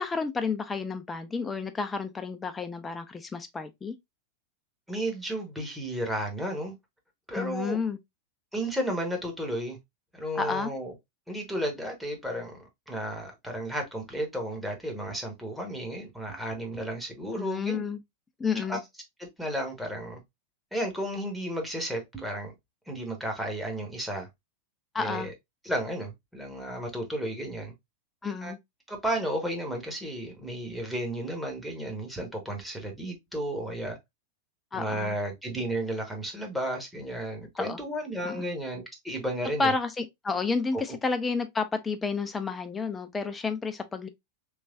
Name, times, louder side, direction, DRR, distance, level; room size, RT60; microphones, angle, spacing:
voice 1, 0.0-4.0 7.3-8.0 10.3-10.7 17.4-18.0 18.4-18.8 24.9-25.3 28.2-28.6 34.7-35.2 37.6-37.8 38.2-38.5 39.6-44.1, left 4 dB, 15° left, 0.5 m, -31 dB
voice 2, 4.9-6.7 7.3-7.8 8.5-9.8 10.1-10.9 11.3-12.6 12.9-17.8 18.7-18.8 19.2-20.2 20.7-22.5 22.9-24.3 25.0-25.3 25.6-27.7 28.4-28.5 28.9-34.0 34.7-39.7, right 1 dB, ahead, 1.0 m, -33 dB
3.3 x 3.0 x 2.4 m
figure-of-eight pair, 90°, 0 cm